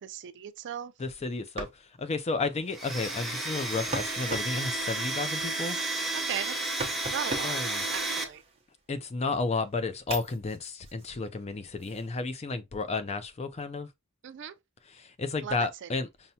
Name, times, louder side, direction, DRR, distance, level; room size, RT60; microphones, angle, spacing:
voice 1, 0.0-0.9 6.1-6.5 7.1-7.6 7.9-8.4 14.2-14.5 15.4-15.9, right 9 dB, 55° right, 0.4 m, -37 dB
voice 2, 1.0-5.8 7.4-7.8 8.9-13.9 14.9-16.3, left 3 dB, 30° left, 0.4 m, -32 dB
sound 1, 1.3-9.0 9.4-12.1, right 2 dB, 30° right, 0.9 m, -42 dB
Domestic sounds home sounds, 2.7-8.2, right 2 dB, ahead, 0.8 m, -32 dB
5.5 x 2.1 x 2.8 m
head